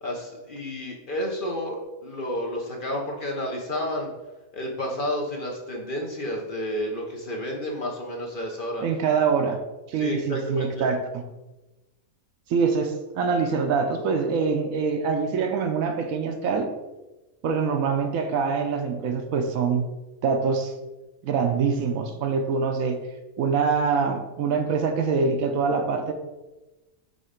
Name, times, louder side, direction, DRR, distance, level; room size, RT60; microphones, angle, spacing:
voice 1, 0.0-4.1 4.5-8.8 10.0-10.9, left 1 dB, 40° left, -1 dB, 0.9 m, -31 dB
voice 2, 8.8-9.6 9.9-11.2 12.5-16.7 17.4-19.9 20.2-20.7 21.2-23.0 23.4-26.1, right 5 dB, 70° right, 6 dB, 1.0 m, -24 dB
5.4 x 3.8 x 5.0 m, 1.1 s
omnidirectional pair, 1.5 m